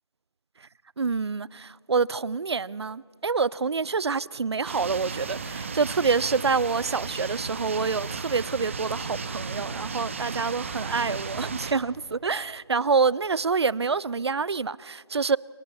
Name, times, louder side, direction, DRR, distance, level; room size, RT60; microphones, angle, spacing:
voice 1, 1.0-15.4, right 4 dB, 70° right, 0.5 m, -27 dB
sound 1, 4.6-11.7, right 4 dB, 30° right, 1.1 m, -34 dB
28.5 x 22.0 x 4.1 m
figure-of-eight pair, 170°, 14 cm